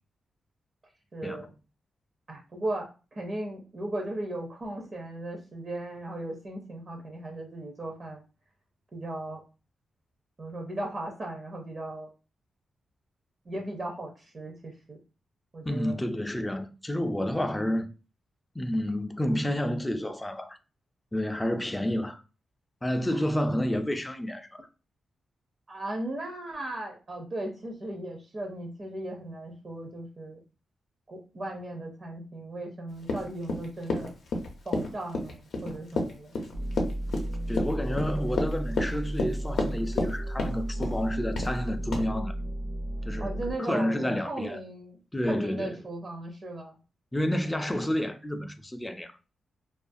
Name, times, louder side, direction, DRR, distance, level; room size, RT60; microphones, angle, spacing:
voice 1, 1.1-1.5 2.3-8.2 8.9-9.4 10.4-12.1 13.5-15.0 15.5-16.0 23.1-23.3 23.6-23.8 25.7-30.4 31.1-34.1 34.6-36.4 43.2-45.0 45.3-46.8, right 1 dB, 40° right, 0.5 m, -37 dB
voice 2, 15.6-17.9 18.6-20.6 21.1-22.2 22.8-24.7 37.5-42.3 43.0-44.6 45.1-45.8 47.1-49.1, left 1 dB, 10° left, 0.3 m, -30 dB
Run, 33.0-40.1 40.4-41.0 41.4-41.6 41.9-42.0, left 2 dB, 75° left, 0.5 m, -30 dB
sound 1, 36.5-43.5, right 1 dB, 75° right, 0.7 m, -33 dB
2.4 x 2.2 x 2.5 m
cardioid pair, 105°, 0 cm